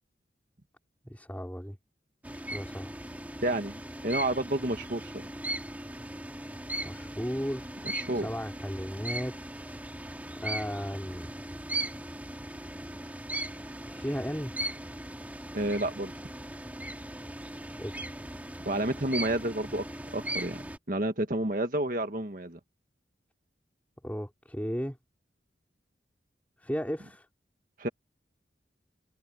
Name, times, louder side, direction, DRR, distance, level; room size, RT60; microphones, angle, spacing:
voice 1, 1.1-1.8 2.3-2.9 6.8-7.7 8.1-9.4 9.6-9.8 10.4-11.3 13.9-14.5 17.8-18.1 24.0-25.0 26.6-27.3, equal, 10° left, 4.2 m, -35 dB
sound 1, 2.2-20.8, right 1 dB, 10° right, 2.8 m, -38 dB
voice 2, 3.4-3.7 4.0-5.2 7.9-8.3 15.5-16.1 18.6-19.8 20.1-20.6 20.9-22.6 27.8-27.9, right 1 dB, 45° right, 1.7 m, -30 dB
head